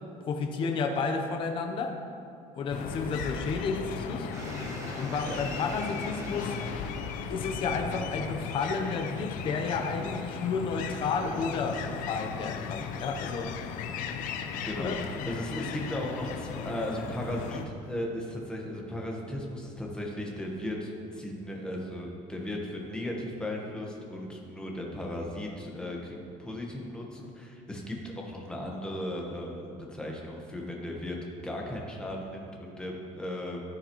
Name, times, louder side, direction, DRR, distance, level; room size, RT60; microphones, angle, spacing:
voice 1, 0.2-2.0 2.6-4.3 4.9-6.9 7.3-13.6 14.8-15.0, left 4 dB, 40° left, 4 dB, 0.8 m, -31 dB
sound 1, 2.7-17.7, left 6 dB, 75° left, 0.7 m, -37 dB
sound 2, 4.3-10.8, right 2 dB, 25° right, 1.2 m, -45 dB
voice 2, 14.6-33.6, left 1 dB, 5° left, -1 dB, 1.3 m, -36 dB
14.5 x 9.6 x 3.1 m, 2.6 s
cardioid pair, 175°, 14 cm